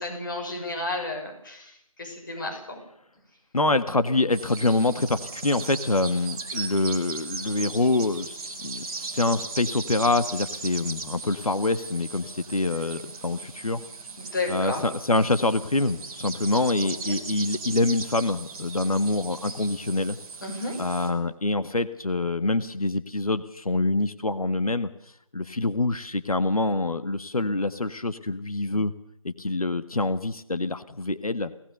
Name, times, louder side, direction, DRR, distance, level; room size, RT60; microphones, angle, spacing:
voice 1, 0.0-2.8 14.2-14.8 16.8-16.9 20.4-20.8, left 2 dB, 35° left, 3 dB, 6.2 m, -32 dB
voice 2, 3.5-13.8 14.5-20.2 20.8-24.9 25.3-28.9 29.2-31.5, left 2 dB, 80° left, 11 dB, 1.6 m, -25 dB
sound 1, 4.3-21.1, right 4 dB, 5° right, 1.1 m, -38 dB
24.0 x 18.5 x 6.8 m, 0.77 s
figure-of-eight pair, 170°, 18 cm